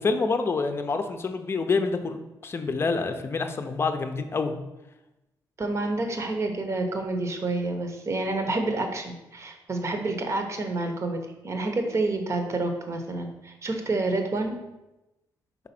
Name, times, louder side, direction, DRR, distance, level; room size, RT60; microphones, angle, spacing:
voice 1, 0.0-2.2 2.4-4.5, left 4 dB, 30° left, 6 dB, 0.6 m, -27 dB
voice 2, 5.6-14.6, right 2 dB, 40° right, 5 dB, 1.0 m, -28 dB
4.9 x 4.1 x 5.9 m, 0.98 s
cardioid pair, 105°, 8 cm